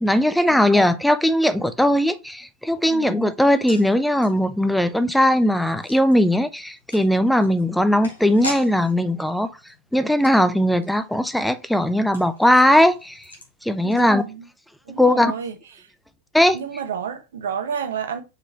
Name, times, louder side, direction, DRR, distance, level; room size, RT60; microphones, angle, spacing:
voice 1, 0.0-9.5 9.9-13.2 13.6-14.2 15.0-15.3 16.3-16.6, left 1 dB, ahead, 0.6 m, -19 dB
voice 2, 2.9-3.3 13.8-14.5 14.8-15.9 16.5-18.2, right 7 dB, 60° right, 1.0 m, -31 dB
sound 1, 3.4-14.6 14.9-15.0 15.3-15.5, left 1 dB, 75° left, 2.0 m, -41 dB
5.1 x 4.9 x 4.5 m
figure-of-eight pair, 90°, 0 cm